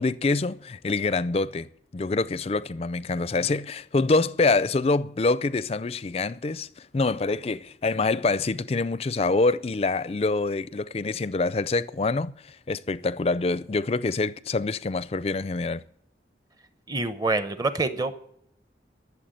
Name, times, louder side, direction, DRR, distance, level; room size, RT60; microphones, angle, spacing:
voice 1, 0.0-1.7 1.9-15.8, left 3 dB, 35° left, 0.4 m, -26 dB
voice 2, 16.9-18.2, right 3 dB, 20° right, 0.8 m, -26 dB
13.0 x 7.0 x 9.1 m
head